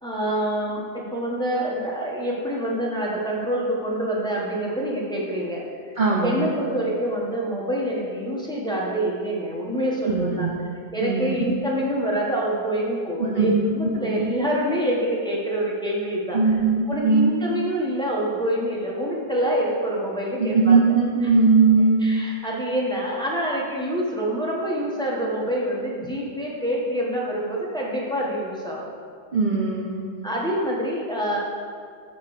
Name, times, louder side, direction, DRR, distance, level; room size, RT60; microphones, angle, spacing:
voice 1, 0.0-10.5 10.9-16.4 16.9-20.8 22.0-28.9 30.2-31.4, right 1 dB, 5° left, -4 dB, 1.0 m, -26 dB
voice 2, 6.0-6.5 10.1-10.6 11.0-11.4 13.2-13.7 14.0-14.3 16.3-17.3 20.4-22.1 29.3-30.1, right 4 dB, 55° right, -2 dB, 0.5 m, -20 dB
8.6 x 4.0 x 6.5 m, 2.2 s
omnidirectional pair, 1.7 m